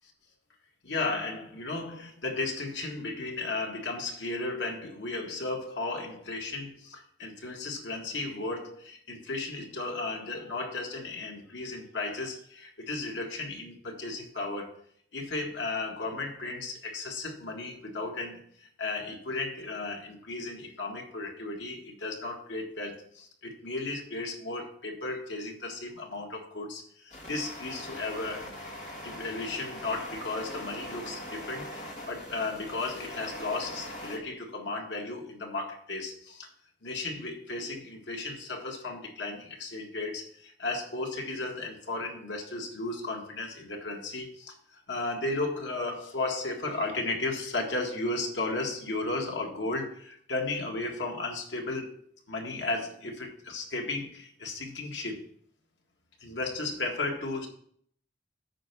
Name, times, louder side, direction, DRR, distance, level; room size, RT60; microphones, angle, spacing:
voice 1, 0.8-14.8 15.1-28.5 29.0-36.5 36.8-52.0 52.3-55.3 56.2-57.5, left 2 dB, 90° left, 2 dB, 1.8 m, -35 dB
sound 1, 27.1-34.2, equal, 45° left, 2.1 m, -41 dB
9.0 x 5.7 x 6.0 m, 0.63 s
head